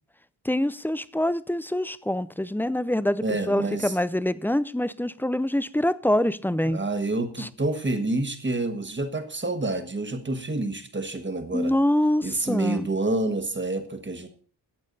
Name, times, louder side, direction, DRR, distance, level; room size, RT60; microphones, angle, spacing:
voice 1, 0.4-6.8 7.4-7.5 11.5-12.9, left 1 dB, 5° left, 0.4 m, -25 dB
voice 2, 3.2-4.0 6.6-11.8 12.2-14.3, right 2 dB, 25° right, 1.5 m, -28 dB
13.5 x 8.5 x 4.0 m
wide cardioid pair, 145°, 42 cm